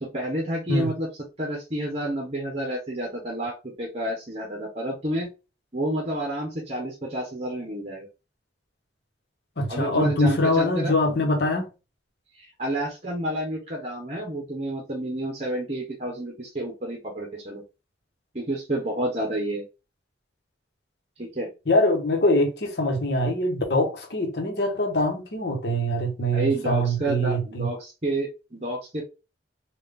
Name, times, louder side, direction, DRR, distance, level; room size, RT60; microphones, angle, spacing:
voice 1, 0.0-1.1 1.4-5.3 5.7-8.1 9.7-10.9 12.4-17.6 18.3-19.6 21.2-21.5 26.3-29.0, right 1 dB, 35° right, 1.0 m, -30 dB
voice 2, 9.6-11.7 21.7-27.7, left 1 dB, 65° left, 1.1 m, -23 dB
3.7 x 2.5 x 3.5 m
head